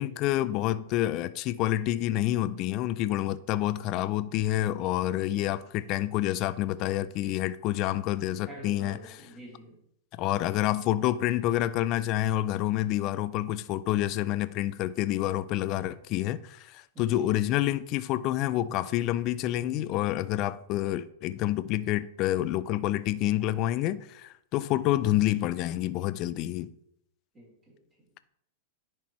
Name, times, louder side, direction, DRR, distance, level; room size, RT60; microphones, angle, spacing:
voice 1, 0.0-9.0 10.1-26.7, left 14 dB, 40° left, 0.3 m, -28 dB
voice 2, 8.4-9.8 16.9-17.3 27.3-27.8, equal, 20° right, 3.1 m, -46 dB
10.5 x 4.4 x 3.1 m
hypercardioid pair, 135°, 0 cm